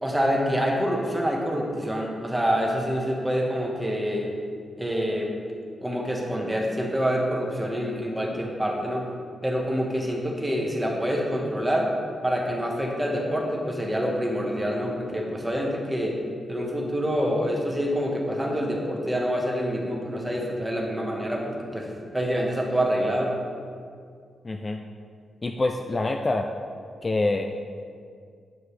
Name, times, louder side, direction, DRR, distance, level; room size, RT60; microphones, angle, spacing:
voice 1, 0.0-4.3 4.8-5.3 5.8-9.1 9.4-11.9 12.2-16.2 16.5-21.9 22.1-23.4, equal, 10° right, -1 dB, 1.3 m, -26 dB
voice 2, 24.4-24.8 25.4-26.5 27.0-27.6, left 2 dB, 30° left, 4 dB, 0.4 m, -26 dB
9.2 x 5.9 x 3.2 m, 2.2 s
cardioid pair, 100°, 0 cm